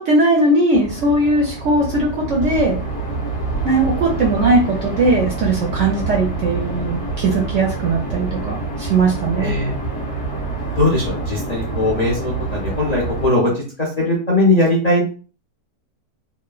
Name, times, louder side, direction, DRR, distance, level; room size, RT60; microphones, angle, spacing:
voice 1, 0.0-2.8 3.6-9.5, right 2 dB, 70° right, -2 dB, 0.7 m, -18 dB
sound 1, 0.7-13.3, right 3 dB, 35° left, 1.2 m, -26 dB
voice 2, 9.4-9.7 10.7-13.5 13.8-15.0, left 2 dB, 75° left, -5 dB, 0.3 m, -19 dB
3.0 x 2.1 x 2.3 m, 0.38 s
omnidirectional pair, 1.8 m